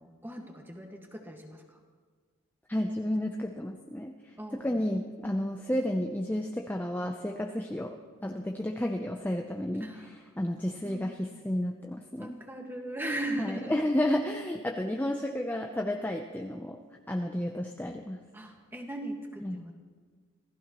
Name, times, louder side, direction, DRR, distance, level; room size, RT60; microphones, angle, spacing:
voice 1, 0.0-1.8 4.4-4.8 9.8-10.1 10.8-11.2 12.2-13.7 18.3-19.7, right 1 dB, 10° right, 2 dB, 1.6 m, -38 dB
voice 2, 2.7-4.1 4.5-12.4 13.4-16.8 17.1-18.2 19.4-19.6, left 1 dB, 10° left, 2 dB, 0.6 m, -32 dB
26.5 x 16.0 x 3.0 m, 1.5 s
head